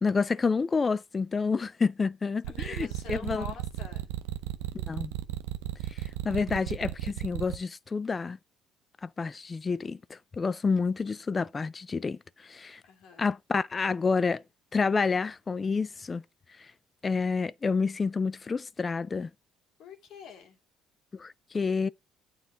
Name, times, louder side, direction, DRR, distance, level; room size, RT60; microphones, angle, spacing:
voice 1, 0.0-3.4 4.7-5.1 5.9-8.4 9.0-12.8 13.2-14.4 14.7-16.2 16.6-16.7 17.0-19.3 21.1-21.9, left 4 dB, 30° left, 0.4 m, -29 dB
sound 1, 2.4-7.6, right 15 dB, 90° right, 0.6 m, -34 dB
voice 2, 2.5-4.1 12.8-13.3 19.8-20.6, left 6 dB, 65° left, 2.2 m, -45 dB
9.1 x 3.9 x 5.5 m
supercardioid pair, 70°, 0 cm